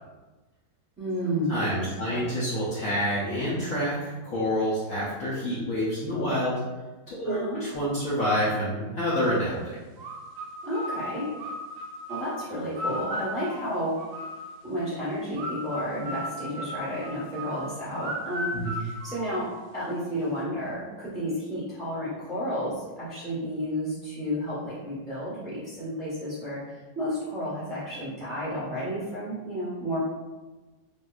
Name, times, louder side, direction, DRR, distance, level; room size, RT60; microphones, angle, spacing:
voice 1, 1.0-1.6 2.0-2.2 7.2-7.6 10.6-11.3 12.1-14.1 14.6-30.0, equal, 15° right, -10 dB, 0.9 m, -32 dB
voice 2, 1.5-6.6 7.1-9.8 18.5-18.8, equal, 60° left, -9 dB, 1.0 m, -28 dB
sound 1, 10.0-14.7 15.4-19.8, equal, 80° right, 0.7 m, -36 dB
3.5 x 2.5 x 2.4 m, 1.2 s
omnidirectional pair, 1.9 m